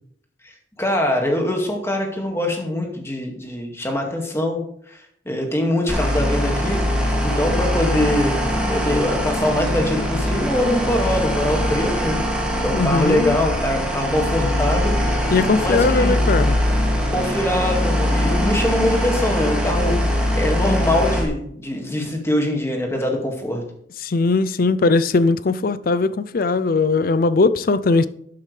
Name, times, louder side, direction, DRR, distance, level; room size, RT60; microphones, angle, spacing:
voice 1, 0.4-4.6 4.9-8.4 8.7-12.2 12.6-15.0 15.6-16.2 17.1-20.0 20.4-23.6, left 1 dB, 15° left, 2.0 m, -23 dB
sound 1, 5.9-21.2, equal, 5° right, 2.3 m, -22 dB
voice 2, 12.7-13.4 15.3-16.6 24.0-28.1, left 3 dB, 50° left, 0.5 m, -19 dB
12.0 x 8.5 x 3.3 m
head